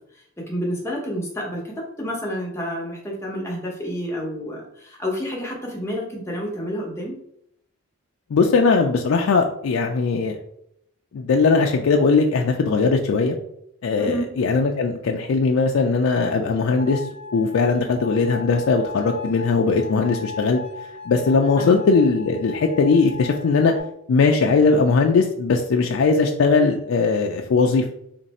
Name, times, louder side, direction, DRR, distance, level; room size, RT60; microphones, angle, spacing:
voice 1, 0.1-7.2 14.0-14.3 21.6-21.8, equal, 10° left, -3 dB, 0.8 m, -29 dB
voice 2, 8.3-10.4 11.1-13.3 13.8-17.0 17.3-20.6 21.1-23.7 24.1-27.9, left 4 dB, 65° left, 2 dB, 0.3 m, -19 dB
sound 1, 16.8-23.8, left 5 dB, 65° right, 1.0 m, -37 dB
3.1 x 2.6 x 4.1 m, 0.74 s
head